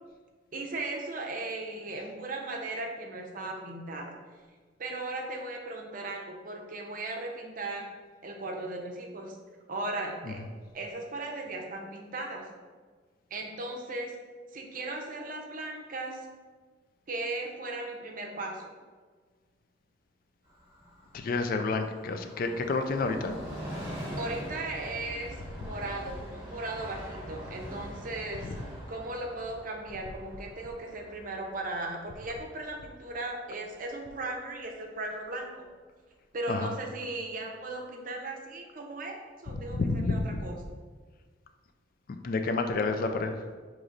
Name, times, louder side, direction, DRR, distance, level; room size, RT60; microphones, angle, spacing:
voice 1, 0.5-4.2 4.8-7.9 8.2-9.4 9.7-10.4 10.7-12.5 13.3-14.2 14.5-16.2 17.1-18.7 24.2-28.5 28.9-35.6 36.3-40.6, right 2 dB, 45° right, 1 dB, 0.6 m, -37 dB
Train, 20.5-33.8 34.1-34.2, equal, 20° right, 1.3 m, -44 dB
voice 2, 21.1-23.4 36.5-36.7 39.7-40.3 42.2-43.4, left 3 dB, 45° left, 7 dB, 0.3 m, -29 dB
6.5 x 3.0 x 2.5 m, 1.5 s
head